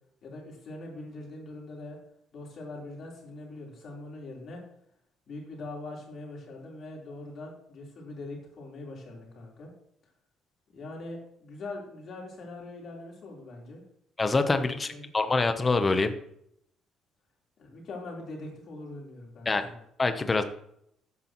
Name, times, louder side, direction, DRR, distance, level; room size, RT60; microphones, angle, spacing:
voice 1, 0.2-2.0 2.3-4.6 5.3-9.7 10.7-13.8 14.6-15.1 17.6-19.8, left 2 dB, 45° left, -2 dB, 3.7 m, -42 dB
voice 2, 14.2-16.1 19.5-19.6 20.0-20.4, left 3 dB, 20° left, 8 dB, 0.8 m, -25 dB
13.0 x 9.6 x 3.0 m, 0.72 s
cardioid pair, 155°, 0 cm